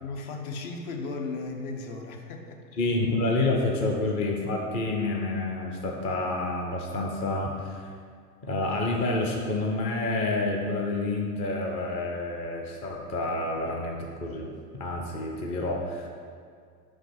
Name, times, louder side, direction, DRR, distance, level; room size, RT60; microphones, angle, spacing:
voice 1, 0.0-2.8 3.8-3.9, left 3 dB, 60° left, 3 dB, 1.1 m, -36 dB
voice 2, 2.8-7.8 8.4-16.1, left 2 dB, 15° left, -1 dB, 0.3 m, -28 dB
5.2 x 4.9 x 5.9 m, 2.1 s
hypercardioid pair, 115°, 49 cm